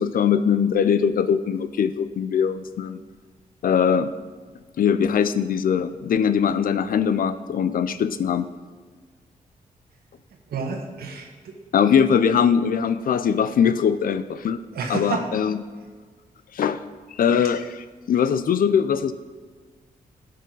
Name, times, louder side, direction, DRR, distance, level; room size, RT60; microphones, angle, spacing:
voice 1, 0.0-3.0 3.6-4.1 4.8-8.5 11.7-14.6 14.9-15.6 16.5-16.8 17.2-19.1, left 7 dB, 70° left, 13 dB, 0.5 m, -21 dB
voice 2, 10.5-11.6 14.7-15.3, right 5 dB, 90° right, 3 dB, 1.4 m, -30 dB
12.0 x 6.7 x 3.9 m, 1.5 s
cardioid pair, 95°, 15 cm